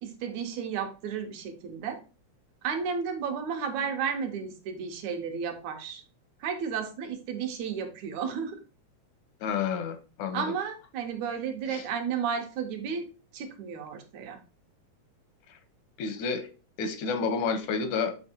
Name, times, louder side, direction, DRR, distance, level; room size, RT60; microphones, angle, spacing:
voice 1, 0.0-2.0 2.6-6.0 6.4-8.6 10.3-13.1 13.3-14.4, right 6 dB, 75° right, 2.2 m, -33 dB
voice 2, 9.4-10.5 11.7-11.8 16.0-16.5 16.8-18.1, left 5 dB, 85° left, 2.2 m, -30 dB
6.9 x 3.3 x 4.3 m
omnidirectional pair, 3.4 m